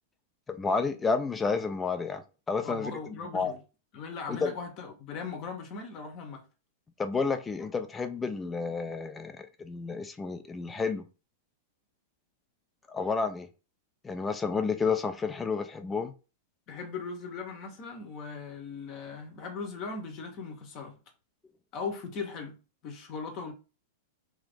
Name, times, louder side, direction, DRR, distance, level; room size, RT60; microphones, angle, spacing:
voice 1, 0.5-2.9 3.3-3.5 4.3-4.5 7.0-11.1 12.9-13.5 14.0-16.1, left 4 dB, 10° left, 0.3 m, -30 dB
voice 2, 2.6-3.6 3.9-6.4 16.7-21.0 21.7-22.6 22.8-23.5, left 4 dB, 35° left, 0.7 m, -38 dB
2.9 x 2.5 x 3.4 m
supercardioid pair, 155°, 0 cm